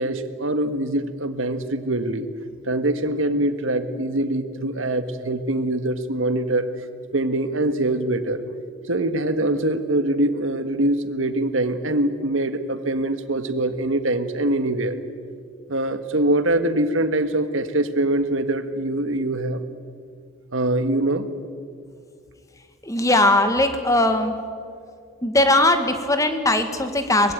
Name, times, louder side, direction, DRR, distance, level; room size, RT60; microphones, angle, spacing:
voice 1, 0.0-2.3 2.7-6.7 7.1-8.4 8.9-14.9 15.7-19.6 20.5-21.3, right 1 dB, 75° right, 10 dB, 1.6 m, -23 dB
voice 2, 22.8-24.4 25.2-27.3, left 1 dB, 15° left, 8 dB, 1.8 m, -19 dB
24.0 x 20.5 x 9.3 m, 2.2 s
head